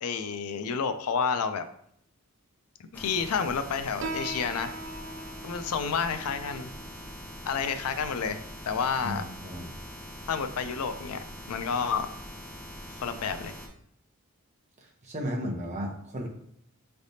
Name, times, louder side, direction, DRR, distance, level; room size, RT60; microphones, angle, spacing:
voice 1, 0.0-1.7 2.9-4.7 5.4-6.7 7.4-9.2 10.3-12.1 13.0-13.5, left 6 dB, 85° left, 10 dB, 0.4 m, -30 dB
sound 1, 2.9-13.7, equal, 5° left, 0.5 m, -43 dB
Piano, 4.0-11.1, right 2 dB, 55° right, 0.3 m, -43 dB
voice 2, 9.0-9.7 15.0-16.3, equal, 30° right, 0 dB, 0.8 m, -34 dB
4.8 x 3.3 x 2.7 m, 0.69 s
head